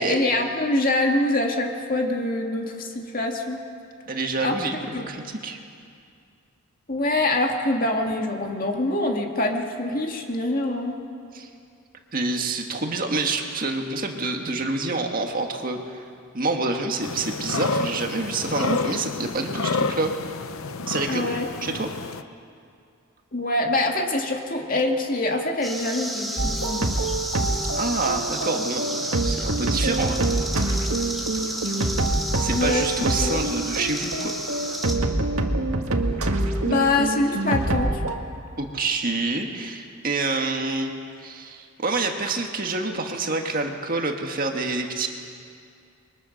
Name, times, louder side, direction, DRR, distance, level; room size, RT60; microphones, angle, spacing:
voice 1, 0.0-3.6 4.4-4.5 4.9-5.1 6.9-11.0 21.1-21.5 23.3-26.9 32.5-33.4 36.6-37.9, left 2 dB, 40° left, 2 dB, 2.3 m, -24 dB
voice 2, 4.1-5.6 11.3-11.5 12.1-16.0 16.3-20.1 20.9-21.3 21.6-21.9 27.7-30.3 32.4-34.4 36.7-36.9 38.6-40.9 41.2-45.1, right 3 dB, 40° right, 3 dB, 1.9 m, -27 dB
sound 1, 17.0-22.2, left 3 dB, 70° left, 0.8 m, -29 dB
sound 2, 25.6-34.9, right 1 dB, ahead, 2.4 m, -32 dB
sound 3, 26.4-38.2, right 2 dB, 80° right, 1.8 m, -26 dB
29.5 x 23.0 x 6.6 m, 2.4 s
head